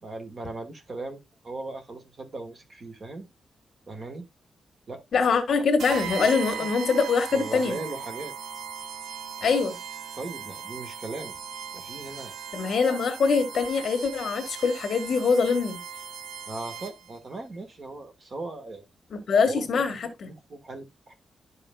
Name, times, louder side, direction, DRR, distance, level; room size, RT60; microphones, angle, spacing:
voice 1, 0.0-3.3 3.9-4.3 4.9-5.0 7.3-8.3 10.2-11.3 11.7-12.3 16.5-18.8 19.4-20.0 20.2-21.1, right 2 dB, 35° right, 1.5 m, -38 dB
voice 2, 5.1-7.8 9.4-9.8 12.5-15.8 19.1-20.3, left 5 dB, 55° left, 1.6 m, -24 dB
sound 1, 5.8-17.2, right 7 dB, 85° right, 0.9 m, -38 dB
11.5 x 5.6 x 2.3 m
wide cardioid pair, 170°, 0 cm